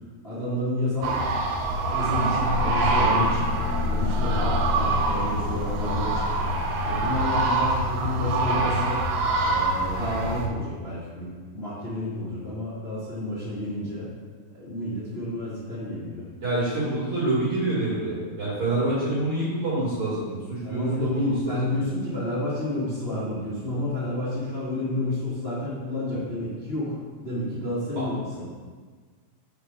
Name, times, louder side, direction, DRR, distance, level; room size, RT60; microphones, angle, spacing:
voice 1, 0.2-1.2 1.9-6.5 6.8-9.0 9.4-14.1 14.5-16.2 20.6-28.4, left 1 dB, 60° left, -11 dB, 0.6 m, -30 dB
sound 1, 1.0-10.5, right 2 dB, 80° right, 2.6 m, -25 dB
sound 2, 2.4-8.4, left 4 dB, 80° left, 2.5 m, -30 dB
voice 2, 16.4-21.6 27.9-28.0, right 2 dB, 50° right, -9 dB, 1.7 m, -27 dB
5.8 x 5.3 x 4.6 m, 1.5 s
omnidirectional pair, 4.8 m